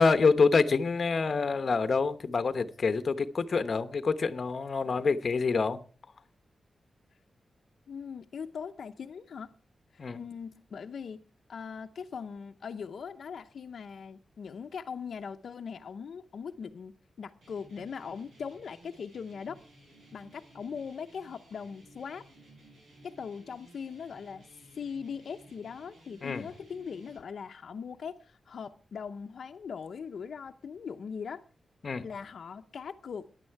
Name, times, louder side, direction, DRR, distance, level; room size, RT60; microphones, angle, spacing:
voice 1, 0.0-5.8 10.0-10.2 26.2-26.5 31.8-32.1, left 4 dB, 45° left, 0.9 m, -26 dB
voice 2, 7.9-9.5 9.9-11.2 11.5-16.9 17.2-19.6 20.1-22.2 23.0-24.5 24.7-31.4 32.0-33.3, left 6 dB, 70° left, 0.7 m, -40 dB
sound 1, 17.4-27.2, right 1 dB, 75° right, 5.7 m, -57 dB
15.5 x 10.5 x 4.6 m
wide cardioid pair, 155°, 0 cm